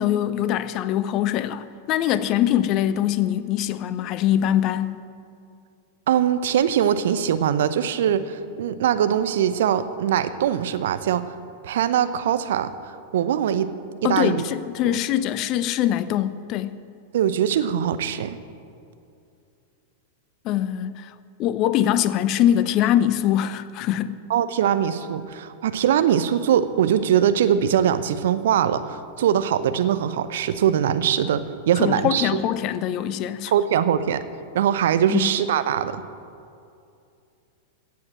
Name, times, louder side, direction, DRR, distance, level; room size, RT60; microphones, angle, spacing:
voice 1, 0.0-5.0 14.0-16.8 20.4-21.1 21.4-24.2 31.8-33.5 35.1-35.2, left 11 dB, 40° left, 0.6 m, -23 dB
voice 2, 6.1-11.3 11.6-12.7 13.1-13.7 14.0-14.4 14.8-15.0 17.1-18.4 24.3-32.4 33.5-34.2 34.5-36.0, right 9 dB, 60° right, 0.8 m, -22 dB
16.0 x 7.6 x 7.6 m
figure-of-eight pair, 95°, 0 cm